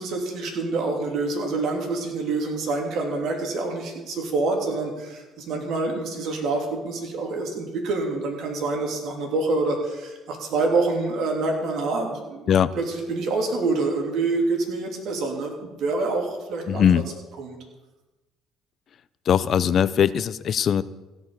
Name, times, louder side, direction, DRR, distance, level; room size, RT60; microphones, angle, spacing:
voice 1, 0.0-12.5 12.7-16.9 17.4-17.6, right 3 dB, 65° right, 2 dB, 3.1 m, -26 dB
voice 2, 16.7-17.1 19.3-20.8, left 8 dB, 55° left, 17 dB, 0.5 m, -20 dB
16.0 x 5.6 x 7.1 m, 1.1 s
supercardioid pair, 65°, 0 cm